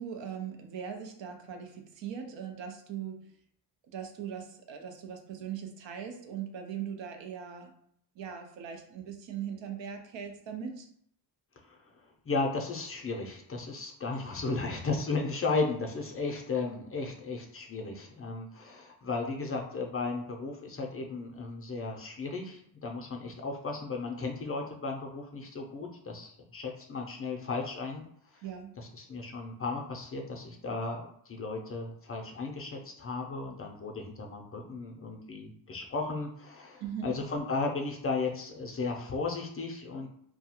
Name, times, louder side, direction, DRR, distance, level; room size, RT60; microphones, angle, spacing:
voice 1, 0.0-3.3 3.9-7.7 8.2-10.9 28.4-28.7 36.8-37.1, right 8 dB, 85° right, 4 dB, 0.6 m, -40 dB
voice 2, 12.3-28.0 28.3-28.4 28.8-40.1, left 3 dB, 35° left, 1 dB, 0.4 m, -35 dB
2.3 x 2.1 x 2.8 m, 0.67 s
wide cardioid pair, 115°, 44 cm